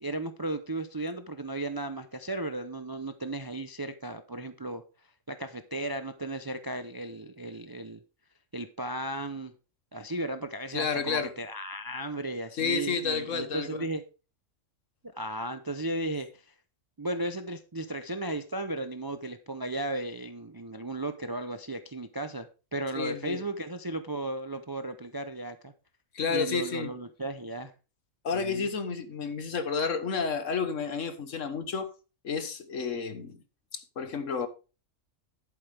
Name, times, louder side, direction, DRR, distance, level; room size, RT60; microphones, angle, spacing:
voice 1, 0.0-4.8 5.3-8.0 8.5-9.5 9.9-14.0 15.2-16.5 17.0-25.7 26.3-27.7 28.3-28.7, right 1 dB, 30° right, 0.4 m, -35 dB
voice 2, 10.7-11.3 12.6-13.8 23.0-23.4 26.1-26.9 28.2-31.9 32.2-33.4 33.7-34.5, left 5 dB, 65° left, 1.6 m, -31 dB
11.5 x 8.5 x 3.4 m
omnidirectional pair, 1.4 m